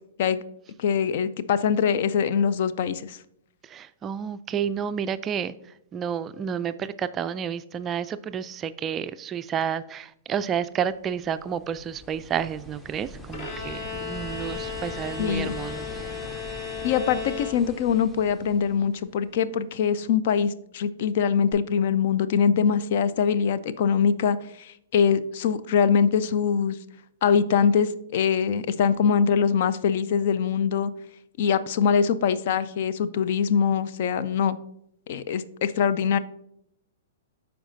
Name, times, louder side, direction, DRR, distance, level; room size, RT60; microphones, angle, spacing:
voice 1, 0.8-3.2 15.2-15.6 16.8-26.8 27.2-30.9 31.4-34.6 35.1-36.2, left 7 dB, 55° left, 0.4 m, -23 dB
voice 2, 3.7-5.5 5.9-16.2, right 8 dB, 25° right, 0.3 m, -30 dB
sound 1, 10.9-19.4 21.5-21.6, equal, 10° left, 0.7 m, -42 dB
Bowed string instrument, 13.3-18.0, left 6 dB, 35° left, 1.4 m, -35 dB
13.5 x 4.5 x 2.6 m
figure-of-eight pair, 110°, 0 cm